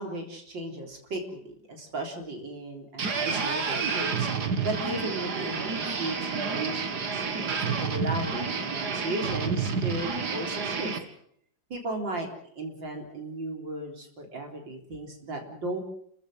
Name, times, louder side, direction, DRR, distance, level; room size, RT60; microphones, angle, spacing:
voice 1, 0.0-10.9 11.7-15.8, right 1 dB, 75° right, 3 dB, 4.6 m, -36 dB
sound 1, 3.0-11.0, right 5 dB, 60° right, 2.4 m, -29 dB
29.5 x 15.0 x 7.8 m, 0.67 s
omnidirectional pair, 2.0 m